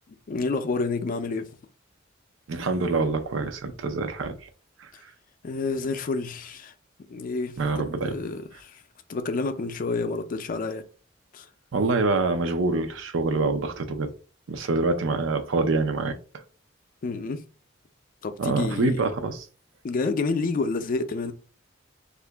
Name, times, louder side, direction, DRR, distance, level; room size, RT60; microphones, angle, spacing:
voice 1, 0.3-1.5 5.4-6.7 7.1-8.8 9.1-10.8 11.3-11.5 17.0-17.4 18.2-19.0 19.8-21.3, left 3 dB, 45° left, 0.4 m, -29 dB
voice 2, 2.5-4.4 4.8-4.9 7.6-8.2 11.7-14.1 14.5-16.2 18.4-19.5, right 3 dB, 80° right, 0.5 m, -25 dB
2.8 x 2.5 x 3.3 m
head